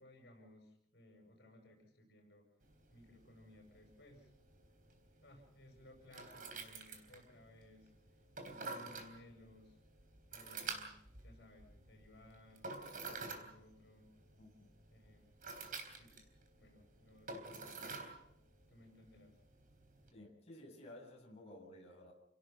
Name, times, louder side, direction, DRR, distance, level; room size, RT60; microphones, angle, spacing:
voice 1, 0.0-2.5 2.9-4.3 5.2-7.9 8.4-9.8 10.3-11.0 11.2-12.7 13.0-14.1 14.9-15.3 15.9-16.2 16.6-18.0 18.7-19.4, left 1 dB, 65° left, 2 dB, 7.7 m, -61 dB
sound 1, 2.6-20.1, right 4 dB, 50° right, 3.8 m, -50 dB
voice 2, 14.4-14.7 20.1-22.1, left 1 dB, 35° left, -3 dB, 7.8 m, -55 dB
29.5 x 18.0 x 5.9 m, 0.70 s
head